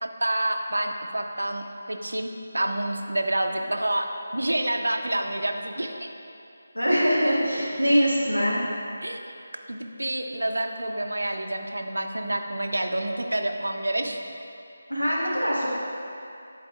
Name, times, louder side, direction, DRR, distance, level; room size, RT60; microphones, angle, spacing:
voice 1, 0.0-6.1 9.0-9.2 9.7-14.2, right 1 dB, 70° right, 4 dB, 0.5 m, -28 dB
voice 2, 6.7-8.6 14.9-15.7, equal, 85° left, -6 dB, 1.5 m, -23 dB
10.0 x 4.1 x 2.3 m, 2.6 s
figure-of-eight pair, 155°, 0 cm